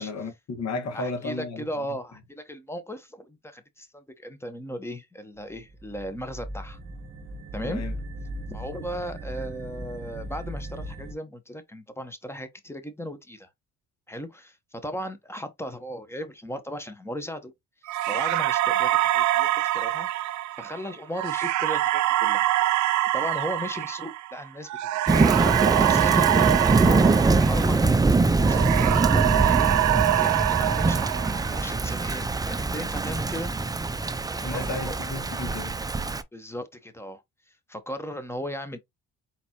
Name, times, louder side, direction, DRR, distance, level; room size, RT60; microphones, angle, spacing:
voice 1, 0.0-1.7 7.6-7.9 34.4-35.8, left 3 dB, 60° left, 1.7 m, -33 dB
voice 2, 0.9-6.8 7.5-7.8 8.5-13.5 14.1-17.5 18.1-20.1 20.6-22.5 23.1-33.5 34.4-34.9 36.3-38.8, equal, 10° left, 1.1 m, -37 dB
sound 1, 5.4-11.1, right 1 dB, 40° right, 1.1 m, -38 dB
sound 2, 17.9-28.1 28.4-31.8, right 15 dB, 70° right, 0.5 m, -25 dB
Thunder / Rain, 25.1-36.2, right 3 dB, 15° right, 0.4 m, -23 dB
4.2 x 4.0 x 3.0 m
cardioid pair, 90°, 30 cm